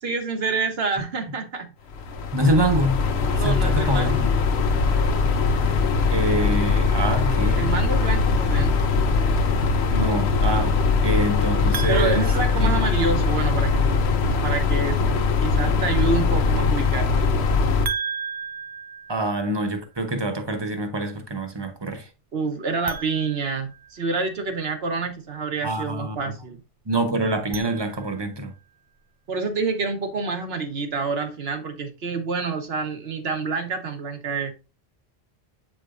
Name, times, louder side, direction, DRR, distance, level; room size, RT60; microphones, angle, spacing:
voice 1, 0.0-1.7 3.3-4.2 7.6-8.9 11.9-14.0 14.4-15.0 15.4-17.2 22.3-26.6 29.3-34.5, right 4 dB, 70° right, 1.3 m, -27 dB
sound 1, 1.9-17.9, left 4 dB, 75° left, 1.0 m, -21 dB
voice 2, 2.3-3.0 3.4-4.3 6.1-7.7 9.9-12.2 12.6-12.7 19.1-22.1 25.6-26.2 26.9-28.5, right 1 dB, 25° right, 0.9 m, -25 dB
sound 2, 11.7-13.4 17.8-19.9 22.8-24.4 27.3-28.5, right 6 dB, 50° right, 0.4 m, -35 dB
8.0 x 5.0 x 2.5 m
omnidirectional pair, 1.1 m